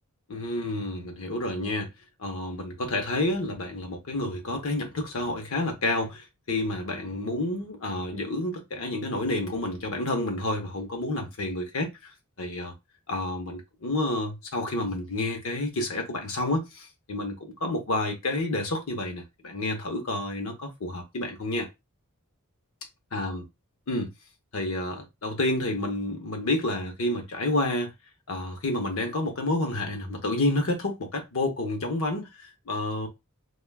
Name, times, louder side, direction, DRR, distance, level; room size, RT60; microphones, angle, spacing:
voice 1, 0.3-1.9 2.2-12.7 13.1-21.7 23.1-23.4 23.9-24.1 24.5-27.9 28.3-33.1, left 2 dB, 65° left, 0.8 m, -29 dB
3.3 x 2.3 x 2.3 m
head